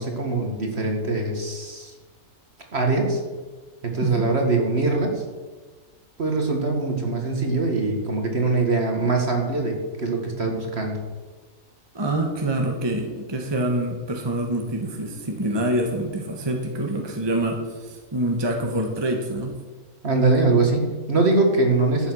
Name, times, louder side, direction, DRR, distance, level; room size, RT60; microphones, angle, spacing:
voice 1, 0.0-1.9 2.7-3.2 3.8-5.2 6.2-11.0 20.0-22.1, right 3 dB, 50° right, 2 dB, 2.3 m, -22 dB
voice 2, 11.9-19.5, right 1 dB, 20° right, 2 dB, 1.4 m, -26 dB
12.0 x 8.6 x 6.4 m, 1.3 s
omnidirectional pair, 1.4 m